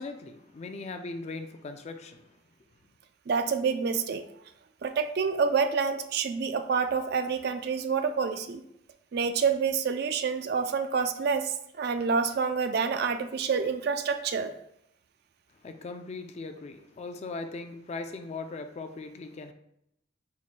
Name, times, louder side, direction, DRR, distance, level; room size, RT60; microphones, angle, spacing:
voice 1, 0.0-2.3 15.6-19.5, left 3 dB, 35° left, 0.3 m, -39 dB
voice 2, 3.3-4.2 4.8-8.6 9.1-14.5, right 5 dB, 55° right, 0.4 m, -28 dB
4.7 x 2.1 x 4.1 m
head